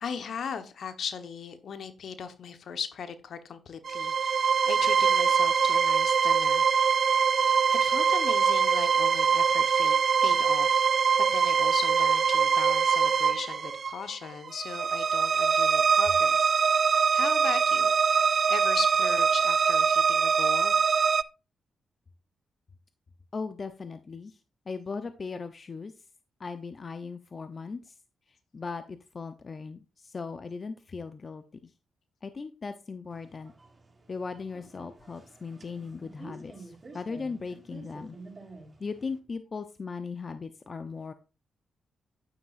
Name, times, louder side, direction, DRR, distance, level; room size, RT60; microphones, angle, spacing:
voice 1, 0.0-7.0 7.8-10.0 10.2-10.9 11.3-16.5 17.1-20.8, left 6 dB, 65° left, 10 dB, 1.3 m, -38 dB
sound 1, 3.8-21.2, right 6 dB, 55° right, 0.4 m, -23 dB
voice 2, 23.3-24.4 24.7-25.9 26.4-28.0 28.5-31.7 32.2-33.5 34.1-38.2 38.8-41.1, left 4 dB, 45° left, 10 dB, 0.9 m, -38 dB
sound 2, 33.1-39.2, right 3 dB, 35° right, 4.3 m, -50 dB
10.0 x 9.4 x 2.6 m, 0.31 s
hypercardioid pair, 40°, 0 cm